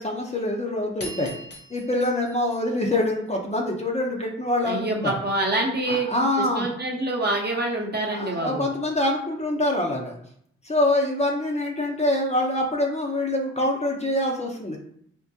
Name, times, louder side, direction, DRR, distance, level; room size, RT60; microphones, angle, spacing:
voice 1, 0.0-1.3 1.7-5.1 5.9-6.7 8.1-10.1 10.6-14.8, left 1 dB, 25° left, 0 dB, 0.7 m, -25 dB
sound 1, 1.0-3.6, equal, 50° left, 1.2 m, -42 dB
voice 2, 4.6-6.1 6.4-8.7, right 2 dB, 35° right, -1 dB, 1.0 m, -26 dB
3.6 x 2.1 x 2.7 m, 0.66 s
supercardioid pair, 45°, 29 cm